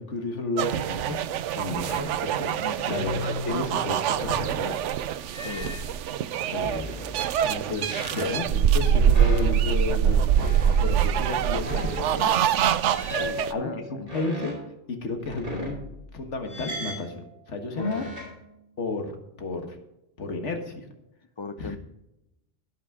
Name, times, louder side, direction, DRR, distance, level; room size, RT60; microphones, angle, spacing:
voice 1, 0.0-2.6 2.9-4.8 5.6-5.7 6.5-7.0 7.4-12.5 13.5-14.6 14.9-15.8 16.1-18.0 18.8-19.1 19.4-19.8 20.2-20.9 21.6-21.8, left 3 dB, 80° left, 5 dB, 1.8 m, -33 dB
sound 1, 0.6-13.5, right 9 dB, 90° right, 0.9 m, -24 dB
sound 2, 1.8-2.1 2.8-5.0 5.3-6.0 6.5-7.3 7.8-8.5 9.1-9.9 10.3-10.9 11.6-12.2 12.8-14.6 15.2-16.1 16.5-17.1 17.7-18.4, left 1 dB, 50° right, 5.0 m, -36 dB
voice 2, 2.6-3.1 5.4-5.8 13.2-14.1 17.8-18.1 21.4-21.8, left 4 dB, 35° left, 11 dB, 0.5 m, -38 dB
17.0 x 6.1 x 4.9 m, 0.88 s
omnidirectional pair, 1.2 m